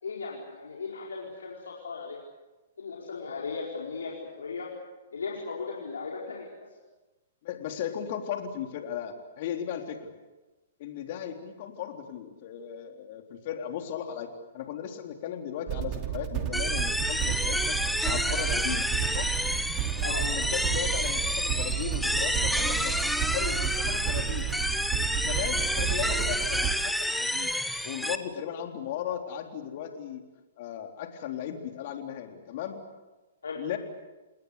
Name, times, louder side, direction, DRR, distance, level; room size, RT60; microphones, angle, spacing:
voice 1, 0.0-2.2 2.8-4.7 5.1-6.5 20.0-20.2 33.4-33.6, left 4 dB, 80° left, -3 dB, 4.8 m, -37 dB
voice 2, 7.4-10.1 10.8-17.8 18.0-19.4 20.0-23.0 23.3-24.5 25.1-27.6 27.8-30.2 30.6-32.8 33.6-33.8, left 9 dB, 50° left, 5 dB, 3.7 m, -36 dB
sound 1, 15.7-26.8, right 12 dB, 35° right, 2.7 m, -32 dB
sound 2, 16.5-28.2, equal, ahead, 1.3 m, -29 dB
28.5 x 20.0 x 8.4 m, 1.1 s
hypercardioid pair, 120°, 0 cm